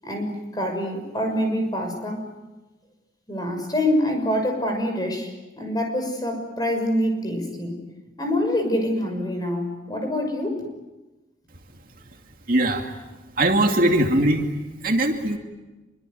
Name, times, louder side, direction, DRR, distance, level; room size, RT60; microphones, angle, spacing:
voice 1, 0.0-2.3 3.3-7.8 8.2-10.7, left 1 dB, 20° left, 4 dB, 6.2 m, -25 dB
voice 2, 12.5-12.9 13.4-14.5 14.8-15.4, right 1 dB, 50° right, 3 dB, 2.5 m, -20 dB
26.0 x 24.0 x 9.4 m, 1.1 s
head